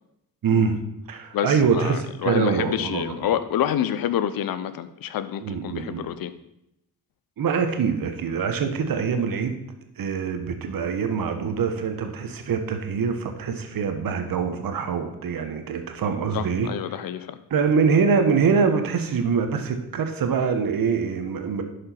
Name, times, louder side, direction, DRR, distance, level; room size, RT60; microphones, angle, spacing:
voice 1, 0.4-0.8 1.1-3.3 5.4-6.1 7.4-9.6 10.0-17.0 17.5-21.6, right 5 dB, 60° right, 7 dB, 1.3 m, -24 dB
voice 2, 1.3-6.3 16.3-17.4, left 10 dB, 65° left, 13 dB, 0.7 m, -27 dB
11.5 x 5.1 x 4.5 m, 0.84 s
hypercardioid pair, 40°, 38 cm